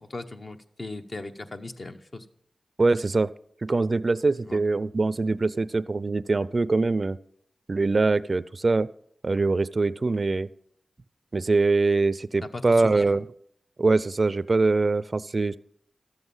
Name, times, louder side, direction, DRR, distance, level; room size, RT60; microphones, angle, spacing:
voice 1, 0.0-2.3 4.5-4.6 12.5-13.1, left 2 dB, 55° left, 6 dB, 1.0 m, -38 dB
voice 2, 2.8-3.3 3.6-7.2 7.7-8.9 9.2-10.5 11.3-13.2 13.8-15.6, right 3 dB, 50° right, 18 dB, 0.4 m, -23 dB
13.0 x 8.1 x 5.5 m, 0.68 s
cardioid pair, 40°, 0 cm